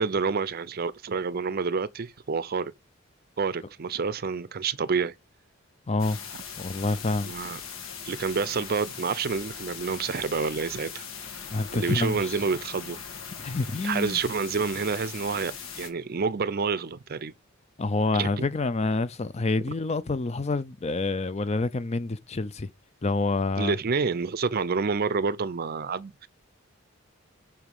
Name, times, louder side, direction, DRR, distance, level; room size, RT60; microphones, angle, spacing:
voice 1, 0.0-2.7 3.4-5.1 7.2-7.6 8.0-11.1 11.7-13.0 13.8-17.3 18.1-18.3 23.6-26.3, right 5 dB, 45° right, 0.5 m, -28 dB
voice 2, 5.9-6.2 6.6-7.3 11.5-12.3 13.4-14.2 17.8-22.7 23.0-23.8, left 3 dB, 30° left, 0.5 m, -27 dB
sound 1, 6.0-15.9, left 6 dB, 80° left, 1.7 m, -40 dB
5.9 x 5.0 x 5.5 m
head